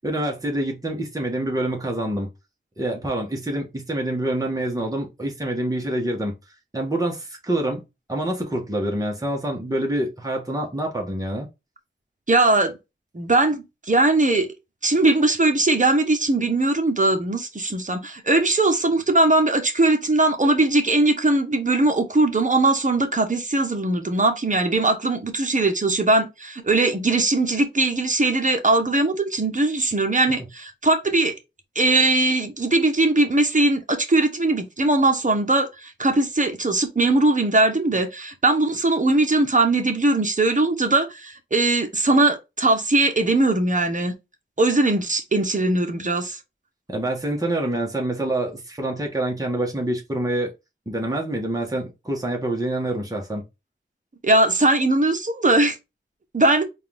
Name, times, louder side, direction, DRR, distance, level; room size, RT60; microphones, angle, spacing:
voice 1, 0.0-2.3 2.8-6.3 6.7-11.5 46.9-50.5 50.9-53.4, right 1 dB, 15° right, 1.4 m, -26 dB
voice 2, 12.3-12.7 13.1-14.5 14.8-31.3 31.7-44.1 44.6-46.4 54.2-55.8 56.3-56.6, right 2 dB, 40° right, 1.2 m, -20 dB
4.1 x 2.6 x 3.5 m
wide cardioid pair, 60°, 21 cm